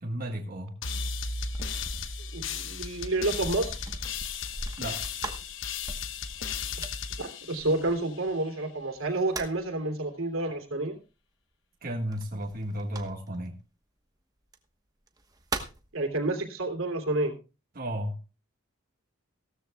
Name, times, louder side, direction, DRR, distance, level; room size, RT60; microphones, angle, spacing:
voice 1, 0.0-0.7 4.8-5.0 11.8-13.6 17.7-18.2, equal, 45° right, 1 dB, 1.7 m, -33 dB
sound 1, 0.8-8.3, left 5 dB, 65° left, 1.1 m, -35 dB
sound 2, 0.9-8.3 8.9-9.7 12.1-13.5 14.4-14.6 15.1-15.9, right 2 dB, 20° right, 1.1 m, -41 dB
voice 2, 2.3-3.8 7.2-11.0 15.9-17.3, right 2 dB, 85° right, 5 dB, 3.0 m, -29 dB
17.0 x 13.5 x 2.3 m, 0.31 s
head